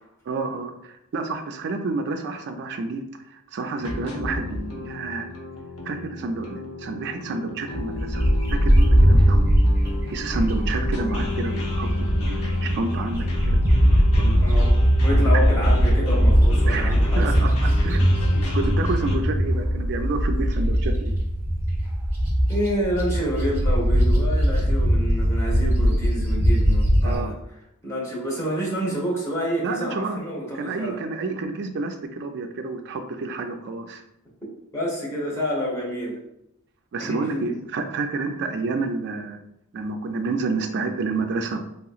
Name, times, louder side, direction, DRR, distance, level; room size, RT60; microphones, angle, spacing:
voice 1, 0.3-5.3 5.8-9.4 10.1-13.6 14.2-14.6 15.3-15.4 16.7-21.2 27.0-27.3 29.6-30.2 30.5-34.0 36.9-39.4 39.7-41.6, right 3 dB, 50° right, 4 dB, 0.3 m, -29 dB
sound 1, 3.8-19.2, left 1 dB, 70° left, 0.8 m, -31 dB
Bird, 8.1-12.6 12.9-27.1, equal, 10° right, 0.7 m, -20 dB
voice 2, 14.4-14.7 15.0-17.2 17.6-17.8 22.5-27.3 27.8-31.0 34.7-36.2 37.0-37.5, equal, 15° left, -5 dB, 0.9 m, -28 dB
3.4 x 2.8 x 2.4 m, 0.82 s
head